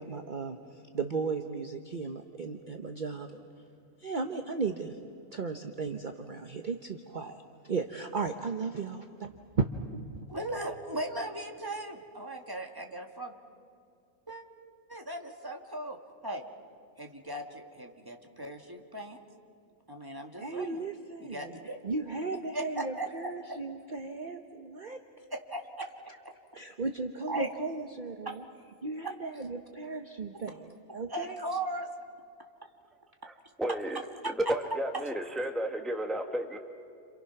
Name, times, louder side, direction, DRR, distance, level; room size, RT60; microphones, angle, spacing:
voice 1, 0.0-3.5 4.0-5.0 5.3-9.3 10.1-10.3 20.4-25.2 26.5-28.4 28.8-31.4, right 4 dB, 35° right, 5 dB, 1.1 m, -36 dB
voice 2, 10.3-13.4 14.3-14.4 14.9-16.0 16.2-16.4 17.0-19.2 19.9-20.8 21.2-21.8 22.5-23.1 25.3-25.9 27.3-27.5 28.3-28.4 29.2-29.3 31.1-31.9, right 1 dB, 15° right, 2 dB, 2.0 m, -37 dB
voice 3, 33.6-34.0 34.5-36.6, right 1 dB, ahead, 4 dB, 1.4 m, -32 dB
30.0 x 27.5 x 6.0 m, 2.5 s
omnidirectional pair, 1.5 m